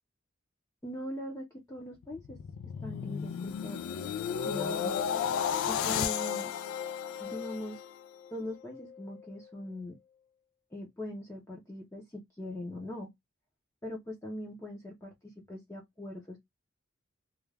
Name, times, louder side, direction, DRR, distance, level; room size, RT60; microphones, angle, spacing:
voice 1, 0.8-2.4 2.8-3.8 4.4-5.0 5.6-6.5 7.2-7.8 8.3-10.0 10.7-13.1 13.8-16.4, left 1 dB, 15° left, 0.5 m, -41 dB
sound 1, 2.0-8.3 8.7-9.0, left 8 dB, 80° left, 0.3 m, -33 dB
2.3 x 2.2 x 3.1 m
head